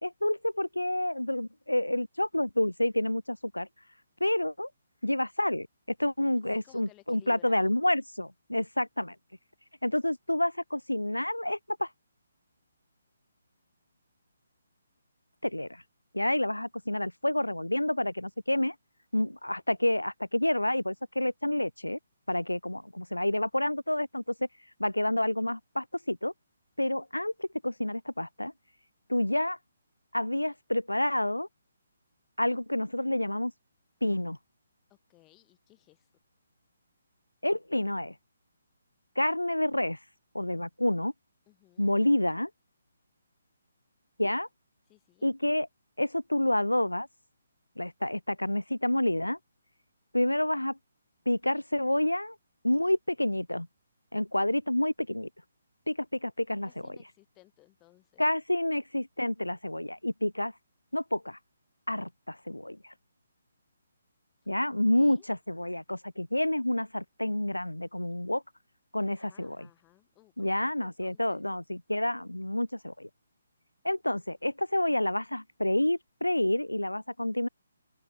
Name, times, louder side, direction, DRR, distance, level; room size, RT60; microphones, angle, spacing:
voice 1, 0.0-3.7 4.2-4.7 5.0-5.7 6.0-9.2 9.8-11.9 15.4-15.8 16.1-18.7 19.1-22.0 22.3-24.2 24.8-26.3 26.8-28.5 29.1-29.6 30.1-31.5 32.4-33.5 34.0-34.4 37.4-38.1 39.2-40.0 40.3-41.1 41.8-42.5 44.2-44.5 45.2-45.7 46.0-47.1 47.8-49.4 50.1-50.8 51.3-52.4 52.6-53.7 54.1-55.3 55.9-57.0 58.2-60.5 60.9-61.4 61.9-62.9 64.5-68.4 68.9-69.7 70.4-73.1 73.8-77.5, left 1 dB, 90° left, 0.4 m, -29 dB
voice 2, 6.3-7.7 34.9-36.1 41.5-41.9 44.8-45.3 56.6-58.2 64.4-64.5 64.8-65.3 69.1-71.4, left 20 dB, 20° left, 1.5 m, -60 dB
open air
figure-of-eight pair, 140°, 0 cm